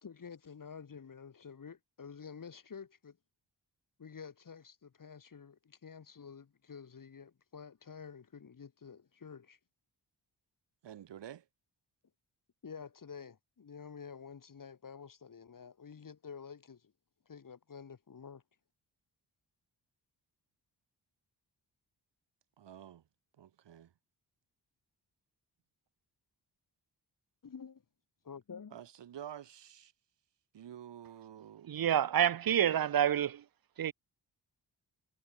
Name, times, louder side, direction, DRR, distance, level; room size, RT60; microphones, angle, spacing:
voice 1, 0.0-3.2 4.0-9.6 12.6-16.9 17.3-18.4 27.4-27.8 28.2-28.8, left 6 dB, 50° left, 2.9 m, -49 dB
voice 2, 10.8-11.4 22.6-23.0 23.4-23.9 28.7-29.9 30.5-31.7, right 10 dB, 80° right, 1.5 m, -49 dB
voice 3, 31.7-33.4 33.8-33.9, right 10 dB, 55° right, 0.6 m, -28 dB
wide cardioid pair, 110°, 42 cm